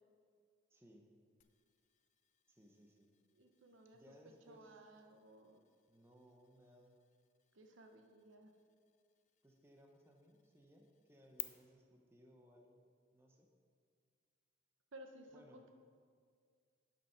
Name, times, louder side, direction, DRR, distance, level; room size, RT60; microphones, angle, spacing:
voice 1, 0.7-1.1 2.5-3.1 3.9-4.6 5.9-7.1 9.4-12.8 13.1-13.5 15.3-15.6, equal, 15° right, 1 dB, 0.8 m, -64 dB
sound 1, 1.4-11.4, left 17 dB, 40° left, 0.4 m, -58 dB
voice 2, 3.3-5.6 7.5-8.5 14.9-15.7, right 1 dB, 90° right, 4 dB, 0.9 m, -58 dB
10.0 x 5.5 x 5.8 m, 2.1 s
head